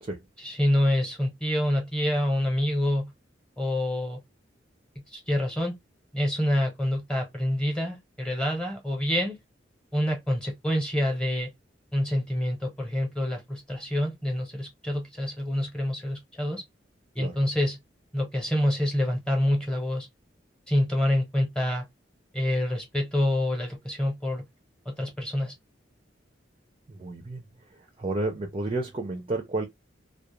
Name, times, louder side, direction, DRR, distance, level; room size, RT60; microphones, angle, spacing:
voice 1, 0.4-3.1 3.6-4.2 5.1-5.7 6.1-9.4 9.9-11.5 11.9-16.6 17.1-17.8 18.1-20.1 20.7-21.8 22.3-24.4 24.9-25.5, left 1 dB, 5° left, 0.8 m, -27 dB
voice 2, 26.9-27.4 28.0-29.7, right 2 dB, 30° right, 0.4 m, -31 dB
2.3 x 2.1 x 2.9 m
head